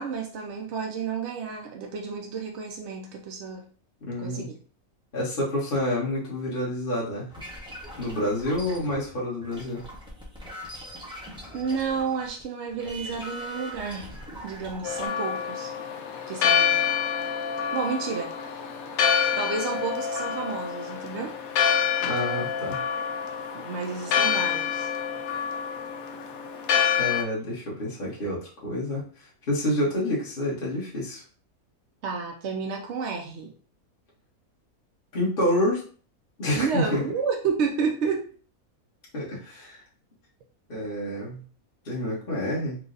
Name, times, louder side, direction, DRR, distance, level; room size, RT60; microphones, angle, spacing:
voice 1, 0.0-3.6 4.2-4.6 11.5-14.1 14.4-15.7 16.3-16.8 17.7-18.3 19.4-21.3 23.5-24.9 32.0-33.5 36.5-38.3, right 5 dB, 60° right, 1 dB, 0.8 m, -31 dB
voice 2, 4.0-4.5 5.1-7.3 8.0-9.8 22.0-22.8 27.0-31.2 35.1-35.8 36.4-37.0 39.1-39.8 40.7-41.4 41.8-42.8, left 1 dB, 40° left, -5 dB, 1.5 m, -28 dB
sound 1, 7.3-12.4 12.7-15.1, equal, 5° right, 1.0 m, -41 dB
Church bell, 14.8-27.2, left 7 dB, 75° left, 1.0 m, -27 dB
4.5 x 2.4 x 3.9 m, 0.42 s
omnidirectional pair, 1.5 m